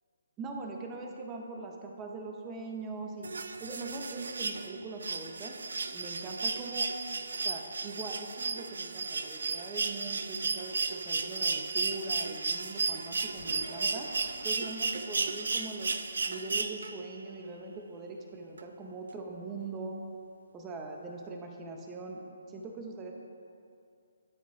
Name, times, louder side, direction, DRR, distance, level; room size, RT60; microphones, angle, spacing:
voice 1, 0.4-3.3 3.6-5.5 5.9-6.9 7.3-14.1 14.4-15.9 16.3-20.0 20.5-23.1, right 3 dB, 15° right, 1 dB, 0.6 m, -41 dB
sound 1, 3.2-17.2 18.6-18.7, right 4 dB, 60° right, 0.3 m, -34 dB
Race car auto racing / Accelerating revving vroom, 12.5-16.5, equal, 85° right, 0.9 m, -49 dB
12.0 x 4.0 x 2.4 m, 2.4 s
figure-of-eight pair, 140°, 0 cm